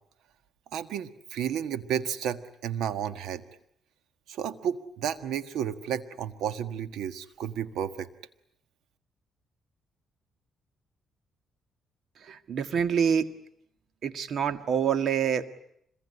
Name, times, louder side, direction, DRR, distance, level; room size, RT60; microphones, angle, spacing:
voice 1, 0.7-3.4 4.3-8.1, right 9 dB, 80° right, 11 dB, 1.5 m, -32 dB
voice 2, 12.3-13.3 14.0-15.5, right 7 dB, 60° right, 10 dB, 1.8 m, -26 dB
26.0 x 22.0 x 9.8 m, 0.73 s
cardioid pair, 90°, 0 cm